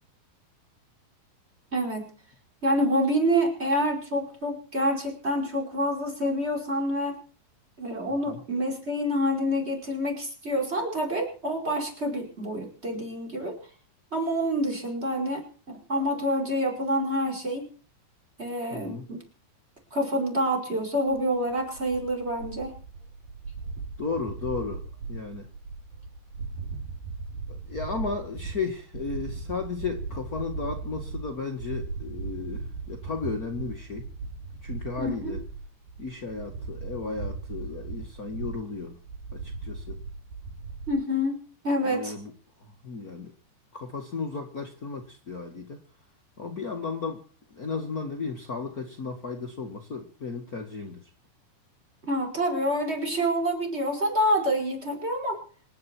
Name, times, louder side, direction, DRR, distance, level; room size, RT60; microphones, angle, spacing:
voice 1, 1.7-2.1 2.6-7.2 7.8-13.6 14.1-17.7 18.4-19.2 19.9-22.7 35.0-35.4 40.9-42.1 52.1-55.4, equal, 15° right, 4 dB, 5.1 m, -27 dB
voice 2, 18.7-19.1 24.0-25.5 27.5-34.0 34.6-35.4 36.0-39.0 39.3-40.0 41.8-42.3 42.6-43.3 43.7-45.8 46.4-51.1, left 4 dB, 45° left, 3 dB, 1.2 m, -34 dB
sound 1, 21.1-40.9, right 4 dB, 55° right, 5.3 m, -38 dB
26.5 x 11.0 x 4.6 m, 0.42 s
omnidirectional pair, 5.0 m